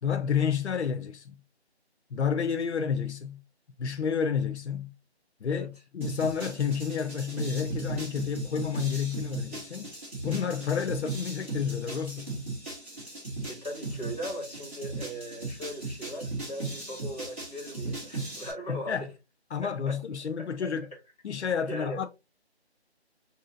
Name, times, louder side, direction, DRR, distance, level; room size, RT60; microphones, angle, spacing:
voice 1, 0.0-1.4 2.1-3.4 3.8-4.9 5.4-9.9 10.2-12.3 18.7-19.1 19.5-20.8 21.2-22.1, left 7 dB, 90° left, 0.5 m, -30 dB
sound 1, 6.0-18.5, right 2 dB, 10° right, 0.8 m, -37 dB
voice 2, 13.5-19.1 19.6-20.0 20.4-20.7 21.7-22.0, equal, 35° left, 1.9 m, -39 dB
4.9 x 2.7 x 2.6 m
figure-of-eight pair, 170°, 33 cm